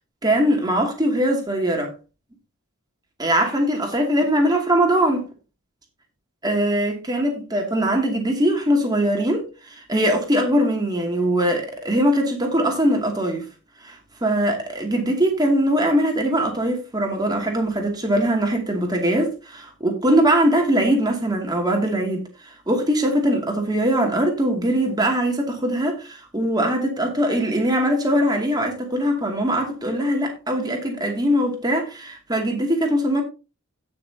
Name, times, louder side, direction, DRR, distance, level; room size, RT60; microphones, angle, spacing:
voice 1, 0.2-1.9 3.2-5.3 6.4-9.5 9.8-13.4 13.8-22.2 22.7-33.2, right 1 dB, 20° right, 2.5 m, -21 dB
17.0 x 6.1 x 2.8 m
head